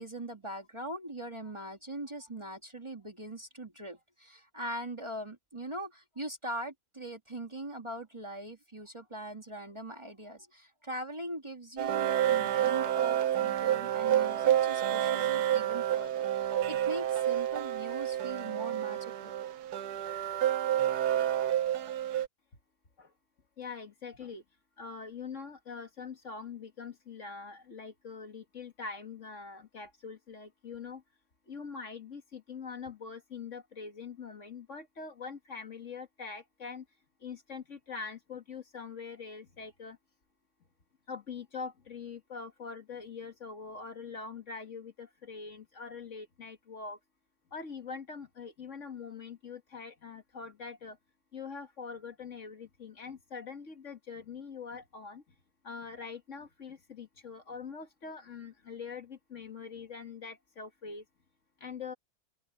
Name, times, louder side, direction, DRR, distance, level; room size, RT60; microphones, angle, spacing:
voice 1, 0.0-19.3, right 1 dB, 20° right, 1.9 m, -41 dB
sound 1, 11.8-22.3, right 11 dB, 90° right, 1.4 m, -29 dB
voice 2, 23.6-24.4 24.8-31.0 31.5-36.9 37.2-40.0 41.1-47.0 47.5-51.0 51.3-55.2 55.6-61.0 61.6-61.9, left 5 dB, 50° left, 1.9 m, -43 dB
omnidirectional pair, 1.6 m